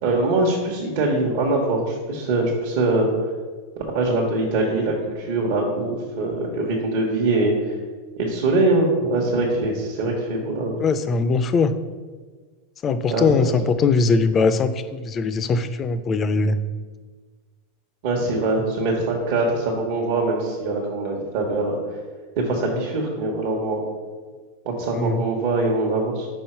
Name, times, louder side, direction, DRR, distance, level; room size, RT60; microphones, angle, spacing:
voice 1, 0.0-3.1 3.9-7.7 8.2-10.8 13.1-13.5 18.0-21.8 22.4-23.8 24.6-26.3, right 2 dB, 60° right, -2 dB, 1.1 m, -23 dB
voice 2, 10.8-11.7 12.8-16.6 24.9-25.2, left 4 dB, 25° left, 11 dB, 0.4 m, -21 dB
5.5 x 4.8 x 4.4 m, 1.4 s
supercardioid pair, 140°, 0 cm